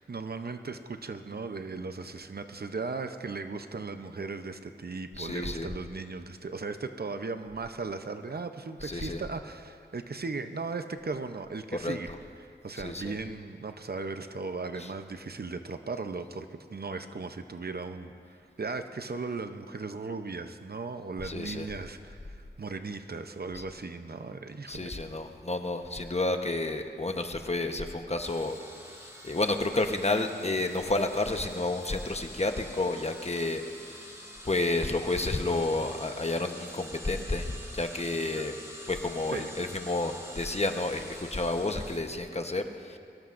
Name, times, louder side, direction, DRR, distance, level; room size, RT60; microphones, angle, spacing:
voice 1, 0.0-25.0 38.3-38.4 39.3-39.5, right 4 dB, 60° right, 8 dB, 0.7 m, -37 dB
voice 2, 5.2-5.7 8.8-9.2 11.8-12.0 12.8-13.1 21.2-21.7 24.7-28.5 29.2-34.0 34.4-38.5 38.9-42.6 42.9-43.0, left 2 dB, 35° left, 5 dB, 1.0 m, -30 dB
sound 1, 28.2-42.0, equal, 15° right, 2.6 m, -46 dB
22.5 x 18.5 x 2.6 m, 2.4 s
wide cardioid pair, 55°, 18 cm